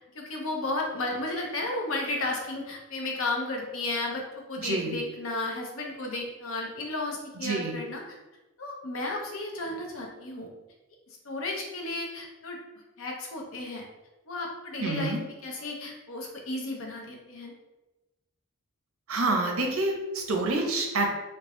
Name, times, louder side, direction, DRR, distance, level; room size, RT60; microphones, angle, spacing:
voice 1, 0.1-8.2 8.6-10.5 11.2-12.6 13.0-13.8 14.3-15.2 15.4-17.5, left 2 dB, 65° left, 0 dB, 0.7 m, -33 dB
voice 2, 4.6-5.0 7.4-7.7 14.8-15.2 19.1-21.1, right 2 dB, 75° right, 2 dB, 0.7 m, -27 dB
3.5 x 2.9 x 3.0 m, 1.1 s
head